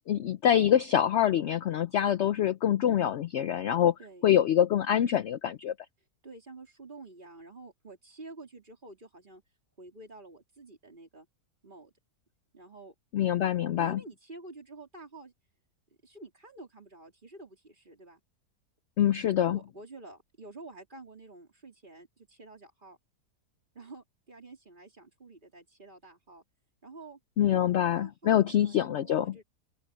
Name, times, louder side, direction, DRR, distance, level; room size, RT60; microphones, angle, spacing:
voice 1, 0.0-3.9 4.2-5.7 13.1-14.0 19.0-19.6 27.4-29.3, left 10 dB, 65° left, 0.7 m, -25 dB
voice 2, 6.2-9.4 9.8-11.3 11.6-11.9 12.5-12.9 13.7-15.3 16.0-18.2 19.5-23.0 23.7-26.4 26.8-27.2 27.5-29.4, right 2 dB, 30° right, 3.5 m, -49 dB
open air
omnidirectional pair, 1.7 m